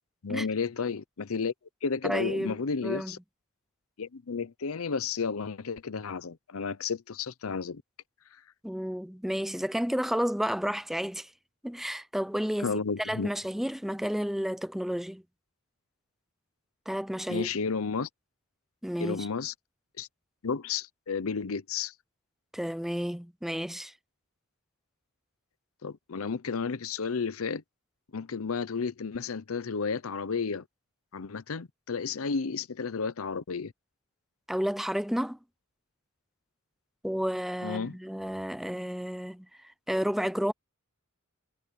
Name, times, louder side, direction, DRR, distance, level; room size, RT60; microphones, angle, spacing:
voice 1, 0.2-1.5 1.8-3.2 4.0-7.8 12.6-13.3 17.3-18.1 19.0-19.5 20.0-20.1 20.4-21.9 25.8-27.6 28.1-30.6 31.1-33.7 37.6-38.0, left 5 dB, 80° left, 0.7 m, -32 dB
voice 2, 2.0-2.6 2.8-3.1 8.6-11.3 11.6-12.7 13.0-15.2 16.9-17.5 18.8-19.3 22.5-23.9 34.5-35.4 37.0-39.5 39.9-40.5, equal, ahead, 0.4 m, -31 dB
head